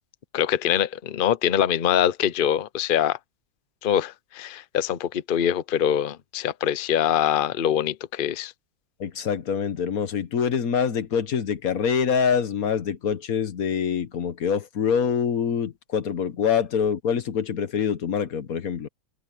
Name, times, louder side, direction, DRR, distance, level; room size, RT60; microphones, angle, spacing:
voice 1, 0.3-3.2 3.8-8.5, left 10 dB, 85° left, 0.4 m, -24 dB
voice 2, 9.0-18.9, left 7 dB, 55° left, 1.5 m, -25 dB
omnidirectional pair, 2.0 m